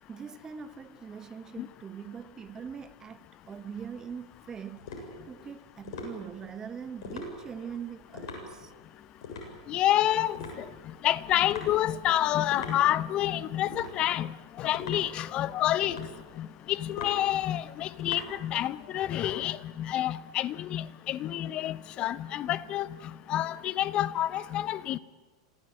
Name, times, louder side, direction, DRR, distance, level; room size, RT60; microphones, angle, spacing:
voice 1, 0.1-4.8 5.2-8.7 21.4-21.5, right 7 dB, 20° right, 1.2 m, -42 dB
sound 1, 3.4-18.9, left 3 dB, 60° left, 7.5 m, -44 dB
voice 2, 9.7-10.4 11.0-16.1 16.4-22.9 23.3-25.0, left 13 dB, 40° left, 0.9 m, -28 dB
26.5 x 16.0 x 9.1 m
figure-of-eight pair, 95°, 3 cm